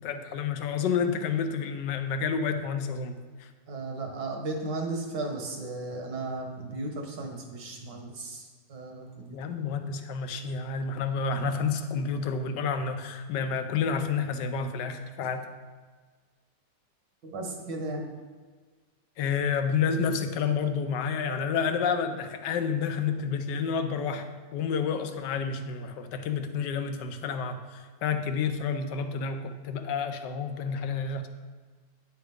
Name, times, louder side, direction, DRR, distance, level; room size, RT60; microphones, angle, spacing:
voice 1, 0.0-3.1 3.4-3.5 9.3-15.5 19.2-31.3, left 6 dB, 80° left, 8 dB, 1.3 m, -29 dB
voice 2, 3.7-9.4 17.2-18.1, right 2 dB, 70° right, 2 dB, 1.9 m, -35 dB
10.0 x 7.7 x 3.6 m, 1.4 s
omnidirectional pair, 1.9 m